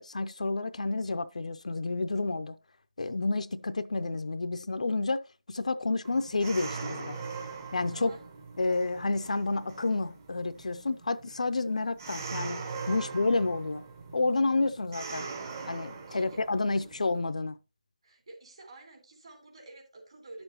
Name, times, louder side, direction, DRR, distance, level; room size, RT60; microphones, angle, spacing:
voice 1, 0.0-2.6 3.0-5.2 5.5-7.2 7.7-8.1 8.6-13.8 14.1-15.3 15.6-17.6, left 3 dB, 55° left, 0.5 m, -30 dB
sound 1, 6.0-17.2, right 4 dB, 25° right, 1.0 m, -41 dB
voice 2, 7.9-8.2 12.9-13.1 16.1-16.4 18.0-20.4, right 2 dB, 45° right, 3.4 m, -50 dB
11.0 x 7.0 x 2.9 m
figure-of-eight pair, 165°, 4 cm